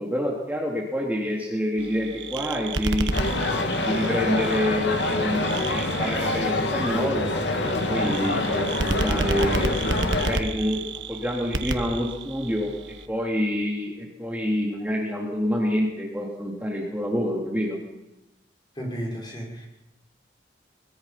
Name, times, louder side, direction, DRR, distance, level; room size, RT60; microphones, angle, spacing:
voice 1, 0.0-3.1 3.8-9.7 10.2-10.8 11.1-12.7 13.1-17.8, equal, 10° right, -2 dB, 2.9 m, -27 dB
sound 1, 1.8-13.1, right 2 dB, 85° right, 1.3 m, -32 dB
sound 2, 3.1-10.4, left 2 dB, 75° left, 2.4 m, -26 dB
voice 2, 18.7-19.7, equal, 25° left, -1 dB, 5.9 m, -33 dB
22.5 x 22.0 x 5.8 m, 0.96 s
head